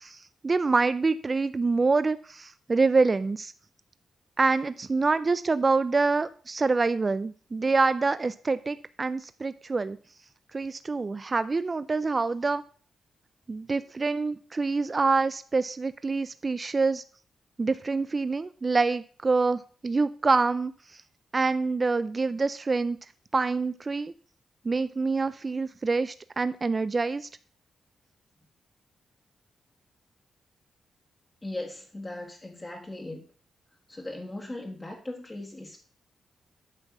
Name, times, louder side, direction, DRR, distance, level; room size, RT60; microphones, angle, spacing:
voice 1, 0.0-3.5 4.4-10.0 10.5-12.6 13.5-17.0 17.6-21.0 21.3-23.0 23.3-24.1 24.6-27.3, right 3 dB, 30° right, 13 dB, 0.4 m, -26 dB
voice 2, 31.4-33.3 33.9-35.8, left 1 dB, 20° left, 0 dB, 1.6 m, -38 dB
8.9 x 6.0 x 6.0 m, 0.42 s
cardioid pair, 100°, 0 cm